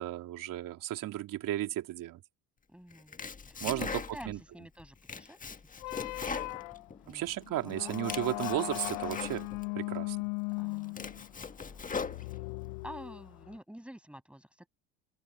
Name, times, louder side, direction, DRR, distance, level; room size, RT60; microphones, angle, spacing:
voice 1, 0.0-2.2 3.6-3.9 4.3-4.4 7.1-9.5 9.8-10.2, right 14 dB, 60° right, 3.4 m, -34 dB
voice 2, 2.7-3.2 3.5-6.7 7.0-7.2 7.6-8.2 10.6-11.2 12.2-12.3 12.8-14.7, equal, 5° right, 7.5 m, -49 dB
Domestic sounds home sounds, 2.9-4.4 4.8-7.3 7.7-9.7 10.2-10.3 10.7-12.7, left 5 dB, 20° left, 1.5 m, -40 dB
sound 1, 5.8-13.6, left 27 dB, 85° left, 0.8 m, -38 dB
open air
supercardioid pair, 95°, 37 cm